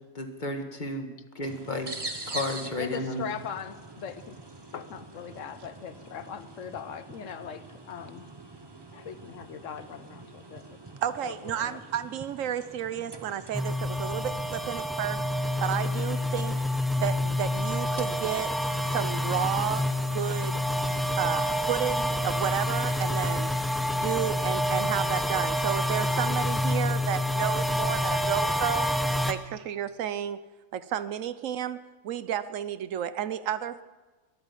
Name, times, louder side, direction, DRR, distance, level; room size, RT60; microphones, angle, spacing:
voice 1, 0.2-2.0 2.3-3.2, left 1 dB, 35° left, 5 dB, 1.7 m, -33 dB
sound 1, 1.4-21.2, right 2 dB, 20° right, 1.1 m, -45 dB
voice 2, 2.8-4.4 4.7-8.2 8.9-10.6 11.2-11.8, left 8 dB, 75° left, 12 dB, 1.2 m, -40 dB
voice 3, 11.0-15.2 15.6-16.6 17.0-18.5 18.9-20.7 21.1-23.5 23.9-28.9 29.3-30.4 30.7-33.8, right 10 dB, 80° right, 14 dB, 1.1 m, -32 dB
sound 2, 13.5-29.3, left 1 dB, ahead, 0.7 m, -28 dB
22.0 x 8.9 x 7.4 m, 1.3 s
omnidirectional pair, 1.3 m